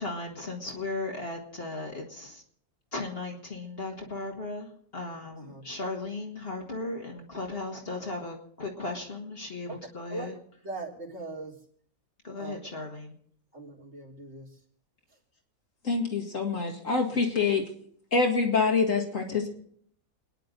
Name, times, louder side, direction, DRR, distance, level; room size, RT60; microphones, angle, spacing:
voice 1, 0.0-2.4 2.9-10.4 12.2-13.1, left 2 dB, 40° left, 1 dB, 2.1 m, -36 dB
voice 2, 10.6-11.5 12.4-12.6 13.5-14.5, right 2 dB, 50° right, -3 dB, 3.8 m, -39 dB
voice 3, 15.8-17.6 18.1-19.5, left 4 dB, 60° left, 1 dB, 2.5 m, -25 dB
29.0 x 10.0 x 3.9 m, 0.64 s
omnidirectional pair, 1.5 m